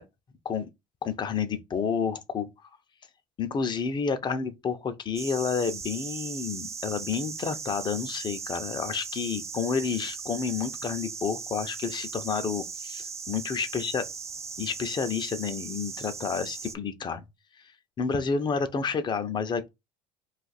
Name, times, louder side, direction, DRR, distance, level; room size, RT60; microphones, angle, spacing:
voice 1, 1.0-2.5 3.4-14.0 14.6-17.3 18.0-19.7, left 6 dB, 30° left, 0.5 m, -30 dB
sound 1, 5.1-16.7, right 5 dB, 20° right, 0.3 m, -38 dB
2.5 x 2.4 x 4.0 m
cardioid pair, 120°, 16 cm